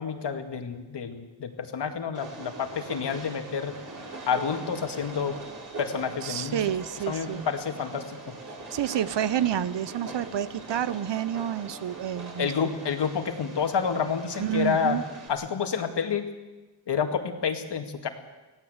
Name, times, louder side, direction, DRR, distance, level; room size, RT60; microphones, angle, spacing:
voice 1, 0.0-3.7 4.3-5.4 5.8-6.8 7.1-8.3 12.4-15.0 15.3-16.2 16.9-18.1, left 6 dB, 60° left, 6 dB, 2.3 m, -29 dB
Train, 2.1-15.3, right 2 dB, 40° right, 5.3 m, -42 dB
voice 2, 6.2-7.5 8.7-12.5 14.4-15.0, right 10 dB, 65° right, 15 dB, 1.0 m, -29 dB
24.5 x 17.5 x 8.2 m, 1.1 s
wide cardioid pair, 150°, 47 cm